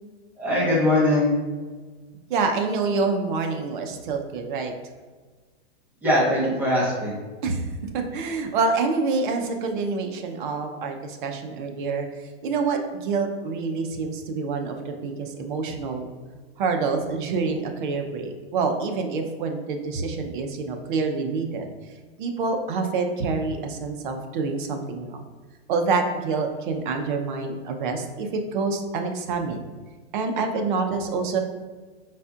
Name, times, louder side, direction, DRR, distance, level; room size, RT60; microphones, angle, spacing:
voice 1, 0.4-1.3 6.0-7.2, left 1 dB, 5° right, -8 dB, 1.1 m, -21 dB
voice 2, 2.3-4.7 7.4-7.7 7.9-12.1 12.4-16.1 16.6-21.7 22.2-25.2 25.7-29.7 30.1-31.4, right 4 dB, 50° right, 4 dB, 0.7 m, -27 dB
5.2 x 4.2 x 2.4 m, 1.4 s
hypercardioid pair, 155°, 33 cm